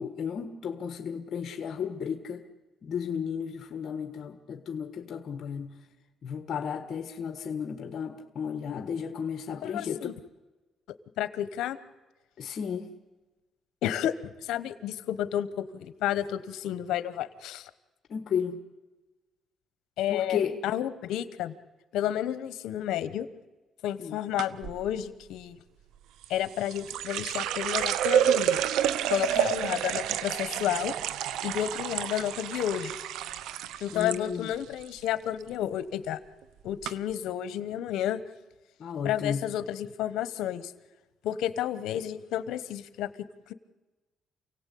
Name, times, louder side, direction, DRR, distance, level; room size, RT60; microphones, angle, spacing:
voice 1, 0.0-2.4 2.8-5.7 6.2-10.1 12.4-12.9 18.1-18.6 20.1-20.6 24.0-24.2 33.9-34.5 38.8-39.4, left 7 dB, 60° left, 6 dB, 1.5 m, -33 dB
voice 2, 9.6-10.1 11.2-11.8 13.8-14.1 14.4-17.7 20.0-21.5 21.9-23.3 23.8-25.6 26.3-28.6 29.1-30.9 31.4-32.9 33.8-36.2 36.6-38.2 39.0-40.7 41.2-43.1 43.5-43.6, left 11 dB, 90° left, 13 dB, 1.1 m, -31 dB
sound 1, 24.4-24.8 26.2-34.2 34.5-35.1 35.4-35.7 36.4-36.5 36.8-36.9, right 10 dB, 90° right, 0.9 m, -29 dB
28.5 x 17.5 x 8.5 m, 1.2 s
cardioid pair, 90°, 0 cm